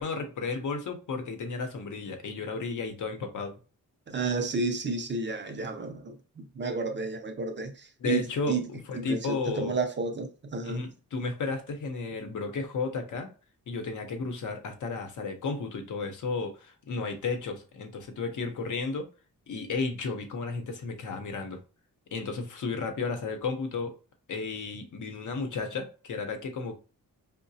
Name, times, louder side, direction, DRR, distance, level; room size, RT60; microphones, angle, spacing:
voice 1, 0.0-3.5 8.0-9.7 10.6-13.3 13.7-19.1 19.5-21.6 22.1-23.9 24.3-26.7, left 4 dB, 65° left, 0.7 m, -33 dB
voice 2, 4.1-10.9, right 4 dB, 35° right, 0.4 m, -32 dB
4.7 x 2.0 x 2.7 m
wide cardioid pair, 155°, 33 cm